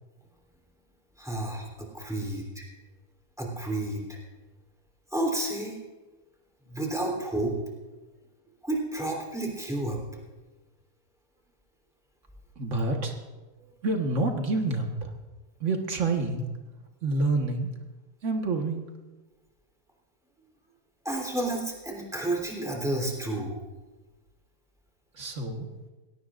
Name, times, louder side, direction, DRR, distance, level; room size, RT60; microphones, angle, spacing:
voice 1, 1.2-2.6 3.4-4.2 5.1-5.8 6.7-7.5 8.6-10.0 21.0-23.6, right 1 dB, ahead, -1 dB, 3.3 m, -31 dB
voice 2, 12.6-13.2 13.8-15.1 15.6-16.5 17.0-17.7 18.2-18.9 25.1-25.7, right 3 dB, 50° right, 3 dB, 1.8 m, -28 dB
21.0 x 17.5 x 2.5 m, 1.2 s
omnidirectional pair, 1.7 m